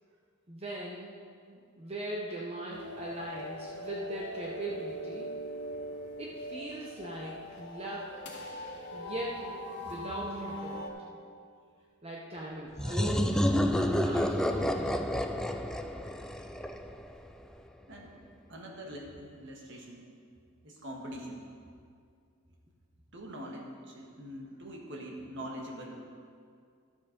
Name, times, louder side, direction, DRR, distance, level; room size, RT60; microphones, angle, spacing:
voice 1, 0.5-1.1 1.5-5.3 6.2-8.2 8.9-9.6 9.8-11.2 12.0-15.4, right 1 dB, 30° right, -3 dB, 0.9 m, -40 dB
sound 1, 2.7-10.9, equal, 55° left, 1.8 m, -41 dB
sound 2, 12.8-17.3, left 1 dB, 5° left, 0.4 m, -29 dB
voice 2, 18.5-20.1 20.6-21.4 23.1-26.0, equal, 60° right, 0 dB, 1.7 m, -43 dB
12.0 x 7.2 x 5.2 m, 2.2 s
head